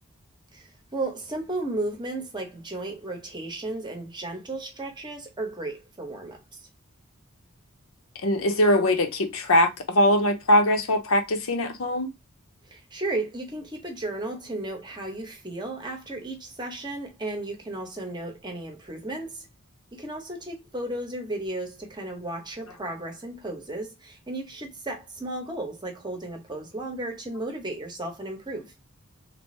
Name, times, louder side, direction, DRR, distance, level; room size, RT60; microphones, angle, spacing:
voice 1, 0.5-6.4 12.7-19.5 19.9-28.7, right 2 dB, 20° right, 0.8 m, -34 dB
voice 2, 8.2-12.1, left 1 dB, 75° left, 0.7 m, -22 dB
3.3 x 2.5 x 3.1 m
head